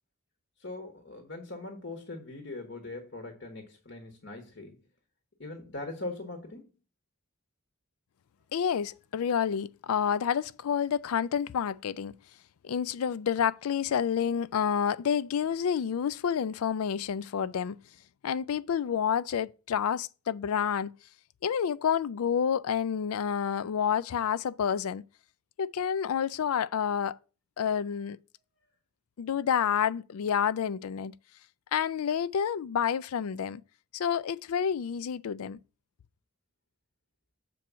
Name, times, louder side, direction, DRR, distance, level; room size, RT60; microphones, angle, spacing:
voice 1, 0.6-4.8 5.4-6.7, left 2 dB, 55° left, 1.3 m, -41 dB
voice 2, 8.5-12.2 12.6-17.8 18.2-20.9 21.4-25.0 25.6-27.2 27.6-28.2 29.2-31.1 31.7-33.6 33.9-35.6, left 7 dB, 85° left, 0.4 m, -29 dB
6.8 x 4.5 x 6.1 m
head